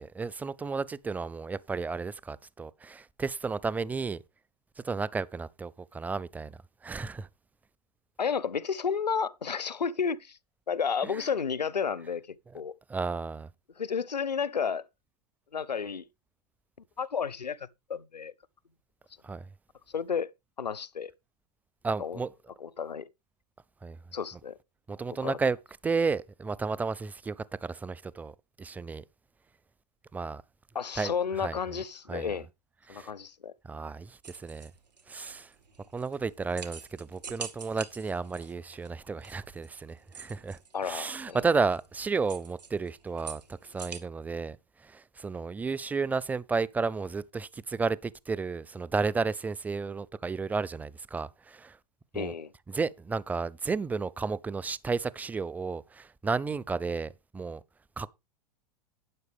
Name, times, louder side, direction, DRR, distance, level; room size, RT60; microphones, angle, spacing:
voice 1, 0.0-4.2 4.8-7.3 11.0-11.2 12.9-13.5 19.2-19.5 21.8-22.3 23.8-24.0 24.9-25.6 25.8-29.0 30.1-30.4 31.0-31.6 32.1-32.3 32.9-33.1 33.6-34.7 35.1-35.5 35.9-51.8 52.1-52.3 52.7-57.6 58.0-58.1, right 4 dB, 10° right, 0.5 m, -32 dB
voice 2, 8.2-10.4 10.7-12.7 13.8-14.8 15.5-16.1 17.0-18.3 19.9-20.3 20.6-21.1 22.0-22.2 22.6-23.1 24.1-24.6 25.2-25.4 30.7-32.5 32.9-33.5 40.7-41.4 52.1-52.5, left 6 dB, 85° left, 0.7 m, -32 dB
sound 1, 34.2-44.0, right 6 dB, 85° right, 2.2 m, -46 dB
12.0 x 9.5 x 3.5 m
figure-of-eight pair, 100°, 21 cm